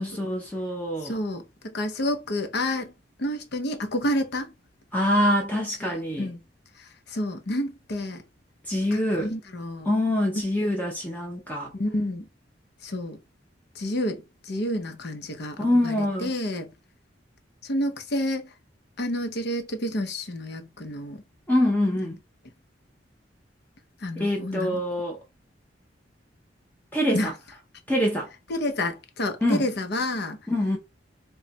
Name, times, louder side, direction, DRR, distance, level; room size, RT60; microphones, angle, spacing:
voice 1, 0.0-1.2 4.9-6.3 8.7-9.3 9.9-11.7 15.6-16.3 21.5-22.2 24.2-25.2 26.9-27.3 27.9-28.3 29.4-29.7 30.5-30.8, left 1 dB, 10° left, 0.7 m, -25 dB
voice 2, 1.0-1.4 1.7-2.9 3.2-4.5 5.8-5.9 6.2-6.4 7.1-8.2 8.9-9.9 11.7-12.2 12.8-13.2 13.8-16.7 17.6-18.5 19.0-21.2 22.0-22.1 24.0-24.8 27.1-27.3 28.5-30.4, left 1 dB, 60° left, 0.7 m, -29 dB
3.2 x 2.2 x 3.9 m
head